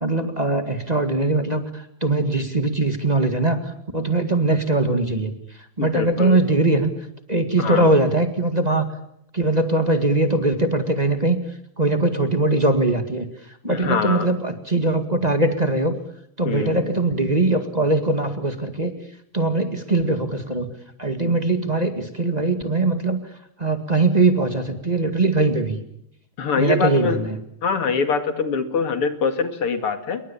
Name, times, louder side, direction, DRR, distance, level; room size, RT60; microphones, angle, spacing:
voice 1, 0.0-5.3 5.8-6.9 7.3-8.9 9.3-11.4 11.8-13.3 13.6-16.0 16.4-19.0 19.3-20.7 21.0-23.2 23.6-25.8 26.6-27.4, right 2 dB, 20° right, 7 dB, 2.0 m, -21 dB
voice 2, 5.8-6.4 7.6-7.9 13.6-14.3 16.4-16.9 26.4-27.3 27.6-30.2, left 5 dB, 85° left, 8 dB, 3.2 m, -24 dB
28.0 x 22.5 x 7.1 m, 0.75 s
omnidirectional pair, 2.4 m